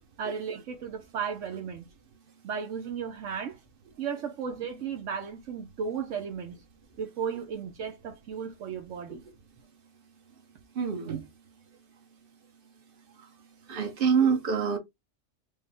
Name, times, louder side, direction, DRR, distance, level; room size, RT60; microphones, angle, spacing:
voice 1, 0.2-1.9 2.4-3.6 4.0-6.6 7.0-9.2, right 7 dB, 75° right, 1.1 m, -35 dB
voice 2, 10.7-11.3 13.7-14.8, right 6 dB, 45° right, 1.2 m, -26 dB
5.1 x 2.1 x 3.5 m
omnidirectional pair, 1.3 m